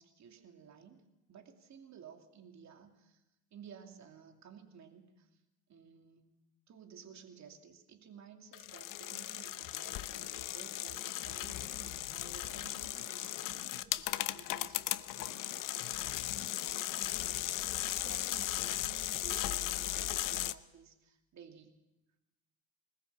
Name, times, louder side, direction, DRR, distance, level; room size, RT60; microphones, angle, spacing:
voice 1, 0.0-1.0 1.3-3.2 3.5-5.3 5.7-6.4 6.7-21.8, right 7 dB, 50° right, 5 dB, 2.7 m, -55 dB
sound 1, 8.5-20.5, left 15 dB, 60° left, 0.9 m, -37 dB
20.5 x 20.0 x 7.3 m, 0.96 s
hypercardioid pair, 70°, 36 cm